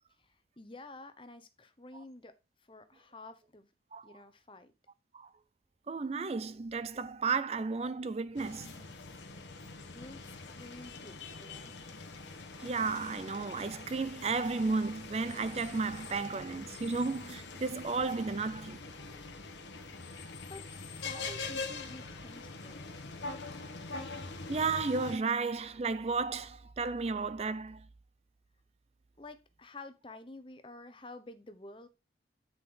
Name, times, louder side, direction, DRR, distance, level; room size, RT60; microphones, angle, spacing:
voice 1, 0.2-2.3 2.7-3.7 4.0-4.7 9.9-11.7 20.5-20.7 20.9-22.9 29.2-31.9, left 2 dB, 30° left, 0.9 m, -50 dB
voice 2, 5.9-8.7 12.6-18.8 21.1-21.2 24.5-27.8, right 4 dB, 35° right, 0.4 m, -33 dB
sound 1, 8.3-25.2, left 3 dB, 85° left, 1.5 m, -44 dB
9.5 x 5.2 x 3.8 m
head